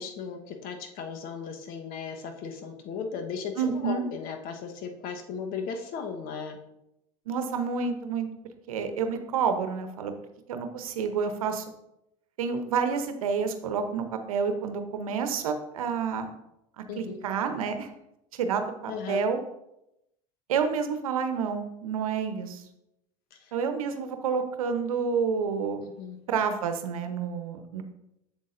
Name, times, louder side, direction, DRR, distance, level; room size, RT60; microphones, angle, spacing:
voice 1, 0.0-6.6 16.9-17.2 18.9-19.2 23.3-23.5 25.9-26.2, left 6 dB, 60° left, 5 dB, 1.2 m, -36 dB
voice 2, 3.6-4.0 7.3-8.3 8.7-10.1 10.5-11.6 12.4-16.3 16.8-17.9 18.3-19.4 20.5-22.6 23.5-25.8 26.3-27.8, right 6 dB, 85° right, 7 dB, 0.8 m, -29 dB
7.7 x 7.5 x 2.6 m, 0.84 s
hypercardioid pair, 80°, 18 cm